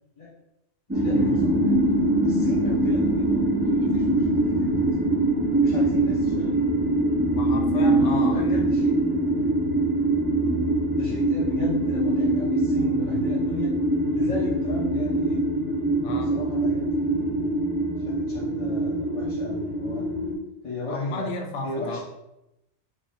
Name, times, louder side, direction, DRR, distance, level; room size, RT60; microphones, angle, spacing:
voice 1, 0.9-1.8 2.2-3.4 3.8-5.0 5.6-6.8 7.8-9.3 10.9-13.7 14.1-15.4 16.2-17.6 18.1-20.0 20.6-21.3 21.6-22.0, left 2 dB, 35° left, -8 dB, 0.7 m, -36 dB
sound 1, 0.9-20.3, right 1 dB, 15° right, 0.5 m, -23 dB
voice 2, 7.3-8.7 16.0-16.4 20.2-20.4 20.9-22.0, left 2 dB, 85° left, 3 dB, 0.9 m, -33 dB
3.2 x 2.6 x 3.2 m, 0.90 s
omnidirectional pair, 1.2 m